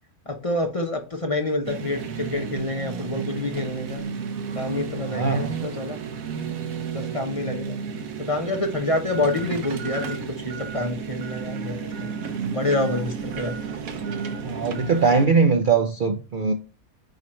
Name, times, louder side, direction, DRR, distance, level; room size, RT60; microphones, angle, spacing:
voice 1, 0.3-4.0 4.5-6.0 6.9-7.8 8.3-10.2 10.4-12.2 12.5-13.5, left 2 dB, 30° left, 0.8 m, -27 dB
sound 1, 1.6-15.3, right 6 dB, 75° right, 1.3 m, -32 dB
voice 2, 5.1-5.6 14.4-16.5, right 4 dB, 55° right, 0.6 m, -21 dB
8.8 x 3.1 x 4.4 m
omnidirectional pair, 1.5 m